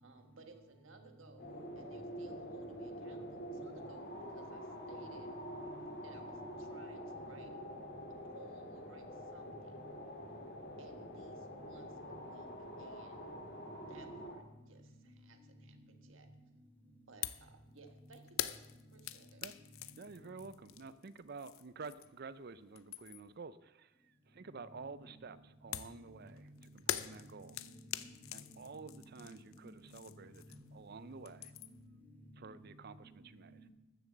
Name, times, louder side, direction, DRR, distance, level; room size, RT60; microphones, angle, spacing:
voice 1, 0.0-5.3 6.0-7.6 8.3-9.9 10.8-12.5 12.8-13.3 13.9-16.3 17.1-18.6 18.9-19.4, right 4 dB, 70° right, 5 dB, 1.4 m, -59 dB
sound 1, 1.4-14.4, equal, 55° left, 2.4 m, -46 dB
sound 2, 17.2-17.5 17.8-22.3 22.6-23.4 25.7-30.8 31.1-31.9, left 12 dB, 80° left, 0.6 m, -44 dB
voice 2, 20.0-26.5 26.7-27.6 28.3-30.4 30.7-31.5 32.4-33.5, right 4 dB, 50° right, 15 dB, 0.5 m, -50 dB
voice 3, 26.9-28.7 29.2-30.2 30.5-30.6 31.1-31.3 31.6-31.8 32.6-32.8 33.0-33.7, equal, 10° left, 0 dB, 2.1 m, -57 dB
13.5 x 7.3 x 7.3 m, 1.0 s
head